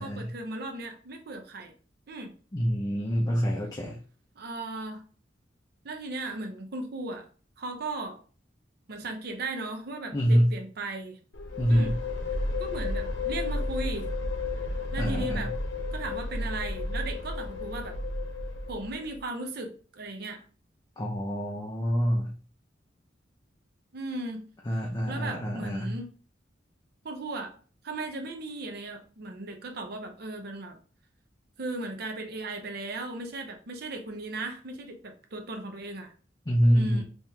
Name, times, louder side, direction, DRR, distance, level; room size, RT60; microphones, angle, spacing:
voice 1, 0.0-1.7 2.1-2.3 4.4-5.0 5.8-7.3 7.6-8.2 8.9-11.2 11.7-12.0 12.3-14.1 14.9-15.5 15.9-18.0 18.7-20.4 23.9-26.1 27.0-27.6 27.8-30.8 31.6-36.1 36.7-37.0, right 2 dB, 60° right, 4 dB, 0.6 m, -37 dB
voice 2, 2.5-4.0 10.1-10.5 11.6-12.0 15.0-15.5 21.0-22.3 24.7-26.0 36.5-37.0, equal, 20° left, -1 dB, 0.5 m, -26 dB
sound 1, 11.3-19.2, left 2 dB, 75° left, 0.7 m, -32 dB
3.8 x 2.9 x 2.7 m, 0.40 s
head